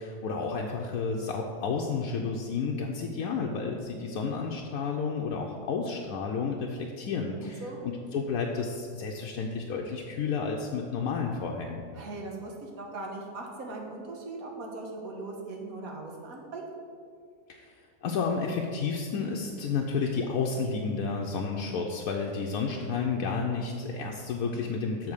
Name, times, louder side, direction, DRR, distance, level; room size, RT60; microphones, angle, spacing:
voice 1, 0.0-11.8 17.5-17.7 18.0-25.1, left 5 dB, 80° left, 0 dB, 1.1 m, -31 dB
voice 2, 12.0-16.7, right 2 dB, 80° right, 0 dB, 1.6 m, -39 dB
7.2 x 4.1 x 6.5 m, 2.2 s
omnidirectional pair, 1.5 m